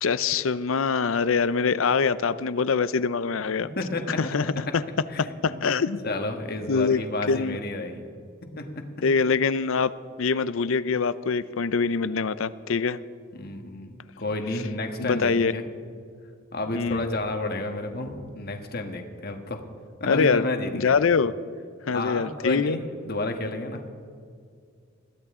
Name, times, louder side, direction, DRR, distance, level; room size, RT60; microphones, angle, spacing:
voice 1, 0.0-3.7 4.2-4.8 5.2-6.0 6.7-7.0 7.3-7.6 9.0-9.9 10.2-13.0 15.0-15.5 16.7-17.1 20.1-20.4 20.7-21.3 21.9-22.8, left 5 dB, 75° left, 15 dB, 0.6 m, -24 dB
voice 2, 3.8-4.5 5.1-5.7 6.0-8.0 8.5-8.8 13.3-15.6 16.5-19.6 20.0-20.9 21.9-23.8, left 2 dB, 50° left, 4 dB, 1.5 m, -31 dB
21.5 x 15.0 x 3.7 m, 2.2 s
head